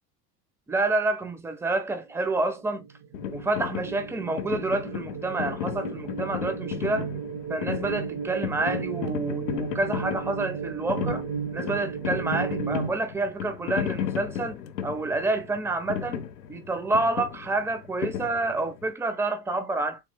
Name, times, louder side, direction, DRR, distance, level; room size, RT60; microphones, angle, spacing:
voice 1, 0.7-2.9 3.3-7.1 7.5-11.2 11.5-14.6 14.8-20.0, right 2 dB, 5° right, 0.5 m, -28 dB
sound 1, 2.3-12.9, right 6 dB, 45° right, 0.8 m, -35 dB
sound 2, 3.1-18.9, left 9 dB, 75° left, 0.7 m, -35 dB
3.7 x 2.9 x 2.8 m
figure-of-eight pair, 70°, 49 cm